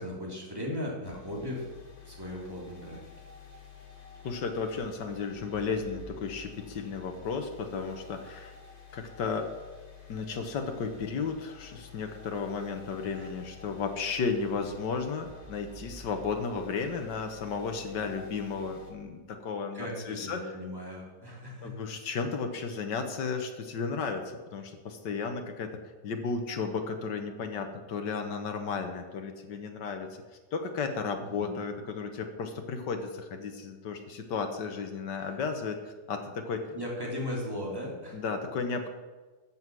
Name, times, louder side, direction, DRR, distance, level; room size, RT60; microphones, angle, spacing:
voice 1, 0.0-1.7 2.0-3.0 13.2-13.3 19.7-21.7 31.2-31.5 35.2-35.4 36.2-36.3 36.7-38.2, left 1 dB, 15° right, -3 dB, 3.0 m, -37 dB
sound 1, 1.0-18.9, left 4 dB, 40° left, 2.1 m, -50 dB
voice 2, 4.2-8.5 8.9-9.5 10.1-20.4 21.6-25.7 26.0-30.1 30.5-36.6 38.1-38.9, left 5 dB, 90° left, 5 dB, 1.8 m, -34 dB
14.5 x 7.4 x 6.2 m, 1.3 s
omnidirectional pair, 1.8 m